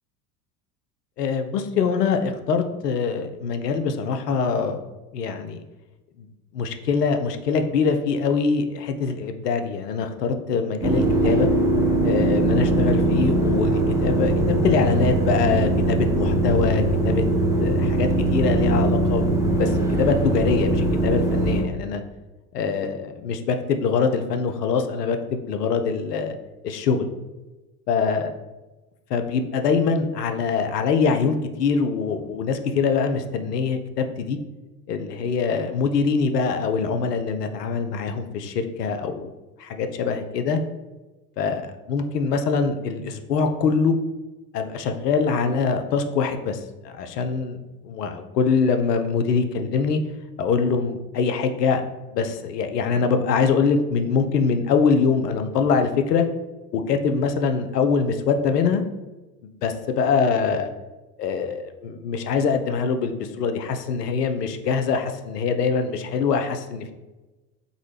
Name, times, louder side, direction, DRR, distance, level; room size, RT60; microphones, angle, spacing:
voice 1, 1.2-4.8 5.1-5.6 6.2-6.3 6.5-11.5 12.0-17.2 17.6-19.3 19.5-19.7 20.0-22.0 22.5-26.4 26.6-27.1 27.9-28.3 29.1-34.4 34.9-39.3 39.6-40.6 41.4-41.6 41.9-43.9 44.5-47.6 47.8-50.0 50.4-51.8 52.1-56.3 56.7-58.8 59.6-60.7 61.2-66.9, left 5 dB, 85° left, 7 dB, 0.5 m, -23 dB
sound 1, 10.8-21.6, right 2 dB, 5° right, 0.6 m, -21 dB
3.8 x 2.1 x 3.2 m, 1.1 s
figure-of-eight pair, 80°, 47 cm